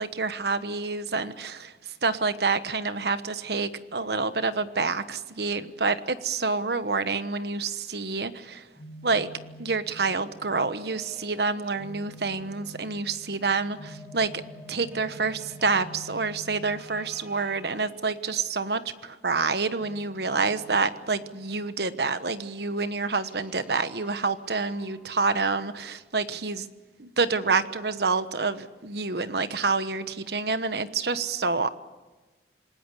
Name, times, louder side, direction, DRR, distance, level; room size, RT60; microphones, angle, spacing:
voice 1, 0.0-1.7 2.0-8.6 9.0-9.3 9.6-14.3 14.7-26.7 27.0-31.7, right 4 dB, 65° right, 12 dB, 1.2 m, -28 dB
sound 1, 8.8-17.8 19.8-21.7 23.2-25.2, equal, 10° right, 4.4 m, -47 dB
27.5 x 19.5 x 8.4 m, 1.2 s
head